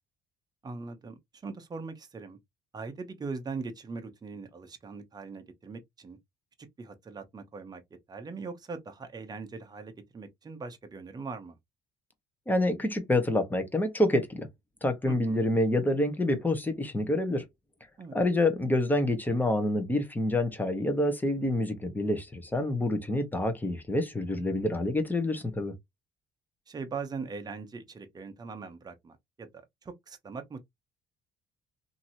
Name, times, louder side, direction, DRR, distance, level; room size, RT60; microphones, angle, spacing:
voice 1, 0.6-2.4 2.7-6.2 6.8-7.8 8.1-11.6 15.1-15.5 18.0-18.2 26.7-29.5 29.8-30.6, right 4 dB, 25° right, 0.7 m, -40 dB
voice 2, 12.5-14.5 14.8-17.4 18.1-25.7, left 1 dB, 10° left, 0.9 m, -27 dB
2.9 x 2.7 x 2.6 m
cardioid pair, 110°, 17 cm